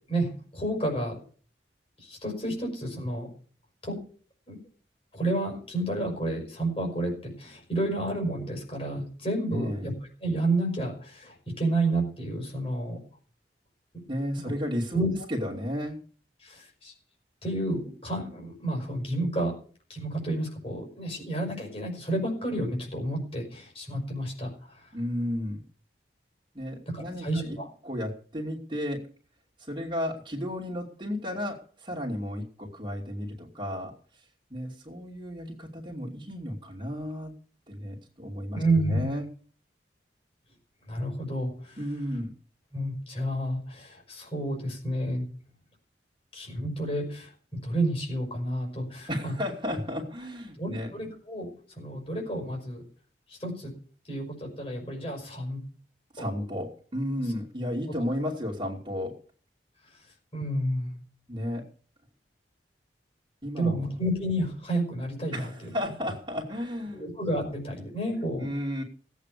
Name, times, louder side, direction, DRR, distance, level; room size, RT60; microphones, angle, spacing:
voice 1, 0.1-1.2 2.0-3.3 3.8-4.0 4.5-4.6 5.1-9.9 10.2-13.0 14.4-14.5 14.9-15.1 16.4-16.9 17.4-19.5 19.9-24.9 26.9-27.7 38.5-39.1 40.9-41.8 42.7-45.3 46.3-49.4 50.6-51.5 51.8-52.8 53.3-53.7 54.1-55.6 56.2-56.3 57.9-58.0 60.3-60.9 63.6-65.5 66.9-68.5, right 1 dB, 35° left, 0 dB, 5.5 m, -30 dB
voice 2, 9.5-9.9 14.1-16.0 24.9-25.6 26.5-27.6 27.8-29.1 29.6-34.2 34.5-37.4 37.7-38.6 38.9-39.3 41.8-42.3 49.1-50.9 56.1-59.2 61.3-61.7 63.4-63.9 65.3-67.0 68.4-68.8, equal, 25° right, -3 dB, 2.7 m, -33 dB
18.0 x 8.4 x 6.7 m, 0.43 s
head